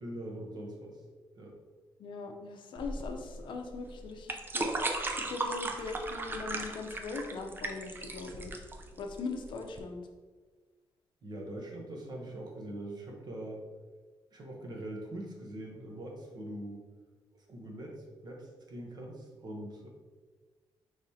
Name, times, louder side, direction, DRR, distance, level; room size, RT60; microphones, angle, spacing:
voice 1, 0.0-1.0 1.4-1.5 11.2-13.6 14.3-16.9 17.5-18.0 18.2-19.9, right 1 dB, 50° right, 0 dB, 0.9 m, -42 dB
voice 2, 2.0-8.6 9.0-10.0, left 3 dB, 65° left, 4 dB, 0.6 m, -40 dB
sound 1, 2.8-9.8, right 2 dB, 25° right, 0.4 m, -37 dB
5.1 x 3.2 x 2.7 m, 1.4 s
cardioid pair, 130°, 9 cm